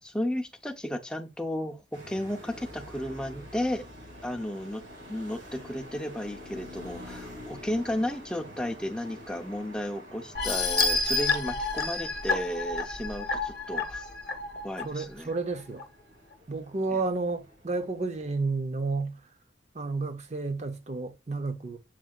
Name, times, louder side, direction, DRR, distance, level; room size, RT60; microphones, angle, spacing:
voice 1, 0.0-3.8 4.2-4.8 5.1-14.1 14.6-15.3, left 1 dB, 5° left, 0.5 m, -33 dB
sound 1, 1.9-18.4, left 1 dB, 80° right, 2.2 m, -48 dB
sound 2, 10.3-14.8 15.3-15.4 15.8-15.9, left 3 dB, 55° left, 0.8 m, -29 dB
voice 2, 14.8-15.8 16.5-19.2 19.7-21.8, right 3 dB, 35° right, 0.6 m, -31 dB
7.3 x 2.7 x 2.3 m
head